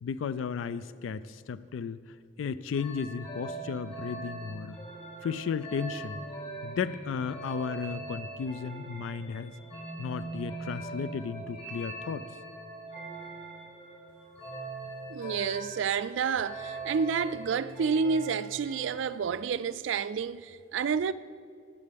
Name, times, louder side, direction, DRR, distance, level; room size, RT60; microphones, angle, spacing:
voice 1, 0.0-4.8 5.2-6.2 6.6-9.5 10.0-12.3, left 6 dB, 85° left, 0.3 m, -34 dB
sound 1, 2.7-19.1, right 2 dB, 35° left, 1.9 m, -42 dB
voice 2, 15.1-21.1, right 6 dB, 70° right, 0.3 m, -29 dB
17.0 x 8.4 x 3.5 m
head